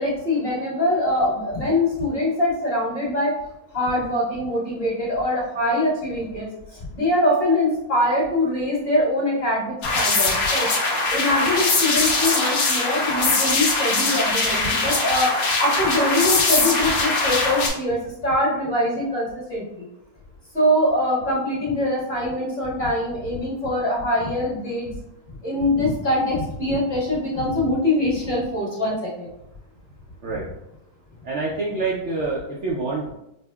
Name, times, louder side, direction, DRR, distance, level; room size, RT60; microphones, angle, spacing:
voice 1, 0.0-3.3 3.7-10.7 11.1-15.3 15.6-19.9 20.5-24.9 25.4-29.3, left 1 dB, 40° left, -7 dB, 1.7 m, -23 dB
sound 1, 9.8-17.7, left 3 dB, 70° left, 1.2 m, -21 dB
voice 2, 31.2-33.1, right 3 dB, 70° right, -3 dB, 0.7 m, -26 dB
5.3 x 2.1 x 2.2 m, 0.85 s
omnidirectional pair, 1.7 m